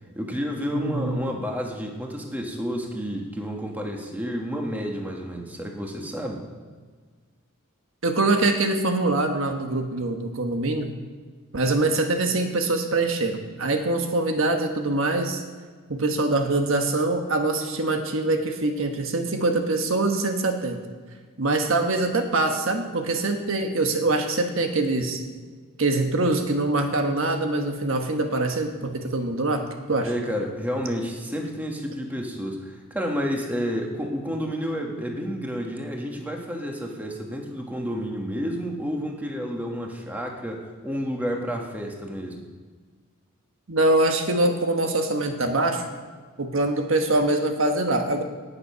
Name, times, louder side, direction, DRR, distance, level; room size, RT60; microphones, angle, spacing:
voice 1, 0.1-6.4 28.8-28.9 30.0-42.4, equal, 10° right, 1 dB, 1.5 m, -30 dB
voice 2, 0.7-1.2 8.0-10.9 11.5-15.4 15.9-20.8 21.4-25.2 25.8-29.6 29.9-30.1 43.7-45.8 46.4-48.2, right 2 dB, 70° right, 5 dB, 1.3 m, -24 dB
19.0 x 6.9 x 5.7 m, 1.5 s
head